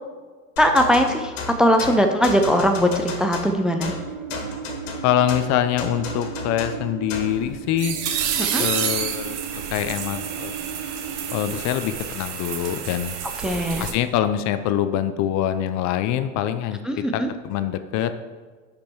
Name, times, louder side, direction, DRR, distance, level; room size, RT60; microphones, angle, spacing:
sound 1, 0.6-7.4, left 3 dB, 85° left, 1.9 m, -33 dB
voice 1, 0.6-1.3 1.6-3.9 8.4-8.7 13.4-13.9 16.8-17.3, equal, ahead, 4 dB, 0.5 m, -20 dB
sound 2, 3.9-11.6, right 8 dB, 90° right, 1.1 m, -36 dB
voice 2, 5.0-8.0 8.6-10.5 11.3-13.1 13.8-16.8 17.1-18.1, left 10 dB, 50° left, 10 dB, 0.7 m, -24 dB
sound 3, 7.2-13.9, right 8 dB, 70° right, 1.3 m, -29 dB
10.0 x 5.3 x 4.6 m, 1.4 s
supercardioid pair, 125°, 37 cm